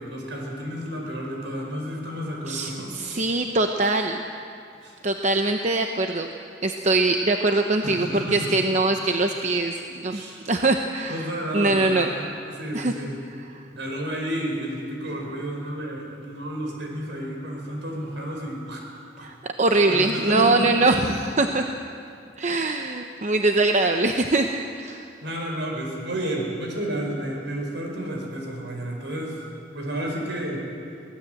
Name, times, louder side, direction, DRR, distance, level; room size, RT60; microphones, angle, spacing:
voice 1, 0.0-3.2 4.8-5.0 7.8-8.5 10.1-10.4 11.1-13.1 13.7-18.8 19.2-19.3 19.8-21.1 25.2-29.5 29.7-30.6, right 1 dB, 70° right, 0 dB, 4.8 m, -31 dB
voice 2, 2.5-4.2 5.0-6.3 6.6-11.3 11.5-12.1 12.7-12.9 13.6-13.7 19.2-21.1 21.4-21.6 22.4-25.1, right 2 dB, 40° right, 4 dB, 0.8 m, -22 dB
23.5 x 17.5 x 7.8 m, 2.5 s
head